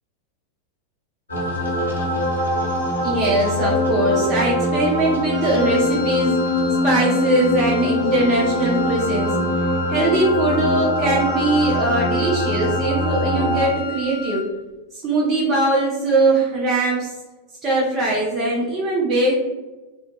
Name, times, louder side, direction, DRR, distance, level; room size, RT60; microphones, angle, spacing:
sound 1, 1.3-13.7, left 1 dB, 70° left, 0.7 m, -23 dB
voice 1, 3.0-6.4 6.8-9.4 9.9-14.4 15.0-17.1 17.6-19.4, right 2 dB, 30° right, -4 dB, 0.6 m, -21 dB
Wind instrument woodwind instrument, 5.3-14.6, left 4 dB, 45° right, 1.1 m, -32 dB
2.4 x 2.1 x 2.8 m, 1.2 s
figure-of-eight pair, 90°, 0 cm